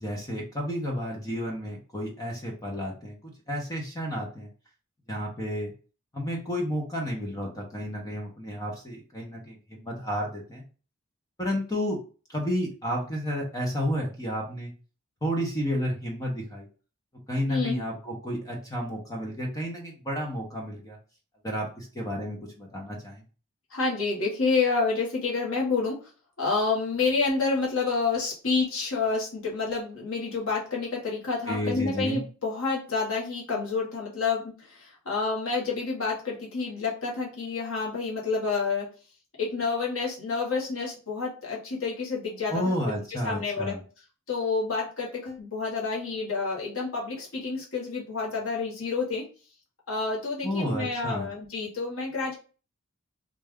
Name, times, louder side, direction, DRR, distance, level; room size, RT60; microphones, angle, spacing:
voice 1, 0.0-4.5 5.1-5.7 6.1-10.6 11.4-12.0 12.3-14.7 15.2-16.7 17.3-21.0 21.4-23.2 31.5-32.2 42.5-43.8 50.4-51.3, equal, 15° left, 0 dB, 0.8 m, -31 dB
voice 2, 23.7-26.1 26.4-38.9 39.4-42.7 43.1-43.8 44.3-49.2 49.9-52.4, left 4 dB, 70° left, -3 dB, 1.3 m, -29 dB
3.3 x 2.5 x 3.5 m, 0.36 s
head